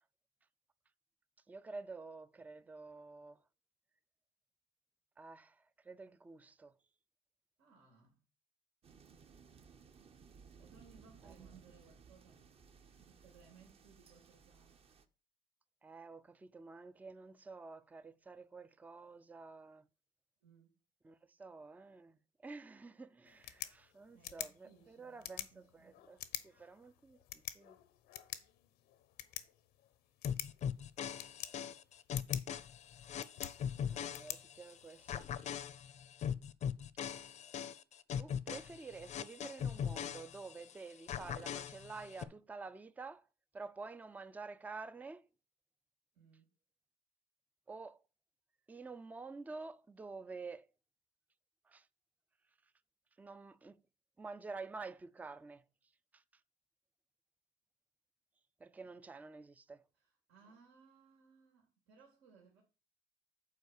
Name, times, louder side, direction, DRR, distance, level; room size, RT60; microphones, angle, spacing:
voice 1, 1.5-3.4 5.2-6.8 11.2-11.3 15.8-19.9 21.0-27.8 33.9-35.3 38.2-43.3 43.5-45.3 47.7-48.0 48.7-50.7 51.6-51.9 53.2-53.8 54.2-55.6 56.1-56.2 58.6-59.8, right 4 dB, 10° right, 0.4 m, -50 dB
voice 2, 7.6-8.2 10.5-12.5 12.8-14.8 20.4-20.8 24.1-26.1 46.1-46.5 58.8-58.9 60.0-62.6, right 6 dB, 85° right, 2.8 m, -64 dB
sound 1, 8.8-15.0, right 5 dB, 35° right, 0.8 m, -61 dB
sound 2, 23.2-35.2, left 13 dB, 90° left, 0.9 m, -48 dB
sound 3, 30.2-34.7 35.1-40.7 41.1-42.2, left 8 dB, 45° left, 0.6 m, -40 dB
8.2 x 4.5 x 6.4 m
cardioid pair, 125°, 17 cm